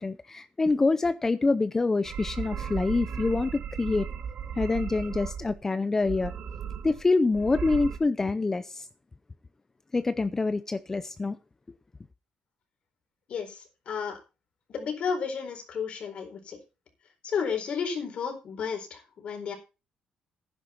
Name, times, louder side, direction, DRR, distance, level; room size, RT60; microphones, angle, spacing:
voice 1, 0.0-4.1 4.6-6.3 6.8-8.9 9.9-11.4, left 3 dB, 20° left, 0.5 m, -26 dB
sound 1, 2.0-5.6 6.0-7.1 7.3-8.0, right 7 dB, 60° right, 2.1 m, -36 dB
voice 2, 13.3-14.2 14.7-16.6 17.2-19.6, left 6 dB, 55° left, 4.2 m, -32 dB
11.0 x 10.5 x 4.4 m
cardioid pair, 130°, 2 cm